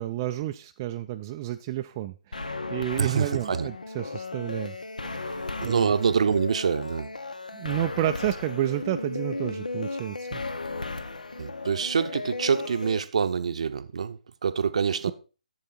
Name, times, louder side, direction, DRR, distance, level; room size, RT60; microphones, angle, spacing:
voice 1, 0.0-4.8 5.2-5.9 7.5-10.4, right 14 dB, 25° right, 0.4 m, -31 dB
sound 1, 2.3-13.0, left 3 dB, 75° left, 0.8 m, -35 dB
voice 2, 3.0-3.7 5.6-7.1 11.4-15.1, right 6 dB, 55° right, 0.7 m, -26 dB
7.8 x 7.1 x 4.2 m
figure-of-eight pair, 140°, 4 cm